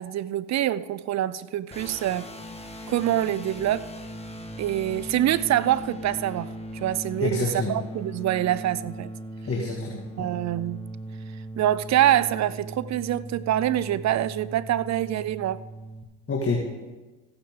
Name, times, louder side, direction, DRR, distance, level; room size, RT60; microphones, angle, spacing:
voice 1, 0.0-2.3 2.9-3.9 4.6-6.5 6.8-9.1 10.2-10.8 11.6-15.6, right 12 dB, 40° right, 0.4 m, -25 dB
sound 1, 1.7-16.0, right 1 dB, 15° left, 1.5 m, -39 dB
voice 2, 7.2-7.8 9.4-10.3 16.3-16.6, left 3 dB, 30° left, 1.8 m, -27 dB
15.5 x 8.7 x 3.7 m
hypercardioid pair, 70°, 48 cm